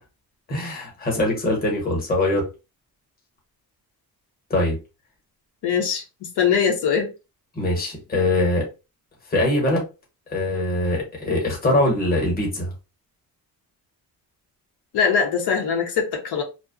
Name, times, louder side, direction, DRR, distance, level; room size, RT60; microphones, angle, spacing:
voice 1, 0.5-2.5 4.5-4.8 7.6-8.7 9.3-9.9 10.3-12.7, left 1 dB, 25° left, 0.9 m, -22 dB
voice 2, 5.6-7.1 14.9-16.4, left 6 dB, 85° left, 0.9 m, -22 dB
2.5 x 2.2 x 2.4 m
cardioid pair, 160°, 39 cm